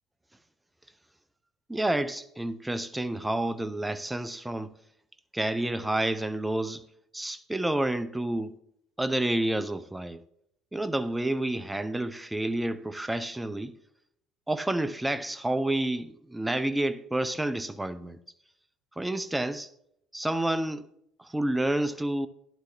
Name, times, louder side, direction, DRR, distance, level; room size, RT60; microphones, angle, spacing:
voice 1, 1.7-4.7 5.3-6.8 7.1-8.5 9.0-10.2 10.7-13.8 14.5-18.2 19.0-19.7 20.1-20.9 21.2-22.3, right 1 dB, 10° right, 0.7 m, -29 dB
12.0 x 11.0 x 2.8 m
hypercardioid pair, 60°, 0 cm